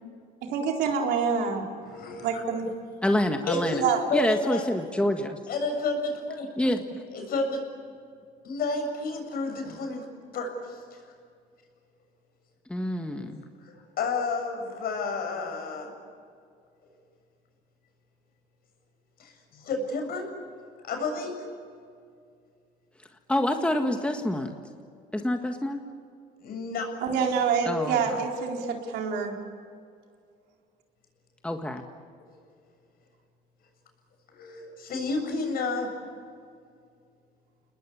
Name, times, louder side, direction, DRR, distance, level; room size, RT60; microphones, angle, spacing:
voice 1, 0.4-1.6 2.2-2.7 3.8-4.0 27.0-29.3, right 6 dB, 85° right, 2 dB, 4.1 m, -26 dB
voice 2, 1.9-2.3 3.5-4.6 5.5-6.5 7.1-7.6 8.4-10.1 10.3-11.0 13.6-15.9 19.2-20.3 20.9-21.4 26.4-26.9 34.3-35.9, left 3 dB, 60° left, 4 dB, 7.2 m, -31 dB
voice 3, 3.0-3.8 4.1-5.4 6.6-7.0 12.7-13.4 23.3-24.5 25.1-25.8 27.6-28.2 31.4-31.8, left 1 dB, 5° left, 5 dB, 1.7 m, -27 dB
30.0 x 20.5 x 8.5 m, 2.3 s
cardioid pair, 110°, 17 cm